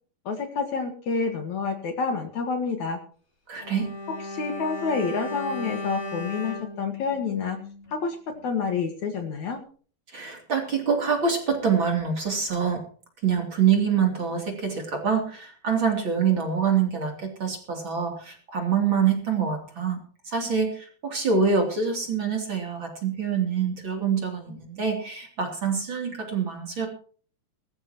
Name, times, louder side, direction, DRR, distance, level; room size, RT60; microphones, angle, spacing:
voice 1, 0.3-3.0 4.3-7.6 7.9-8.2 8.4-9.6, left 5 dB, 55° left, 5 dB, 2.8 m, -28 dB
voice 2, 3.5-3.9 10.1-12.8 13.2-20.0 20.3-26.9, right 6 dB, 35° right, 2 dB, 3.5 m, -25 dB
Bowed string instrument, 3.6-8.0 8.3-8.5, left 2 dB, 15° left, 4.7 m, -36 dB
21.0 x 14.0 x 3.0 m, 0.43 s
omnidirectional pair, 4.3 m